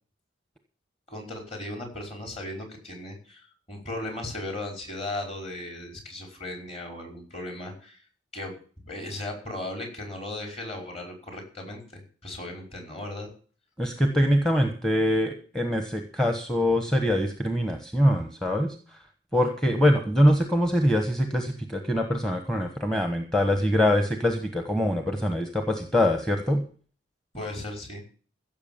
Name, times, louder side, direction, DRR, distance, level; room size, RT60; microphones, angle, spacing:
voice 1, 1.1-8.0 8.3-8.5 8.9-11.8 12.2-13.3 27.3-28.0, left 1 dB, 30° left, 2 dB, 5.3 m, -36 dB
voice 2, 13.8-19.0 19.3-26.6, equal, 5° left, 4 dB, 1.2 m, -24 dB
15.5 x 7.2 x 7.3 m, 0.42 s
head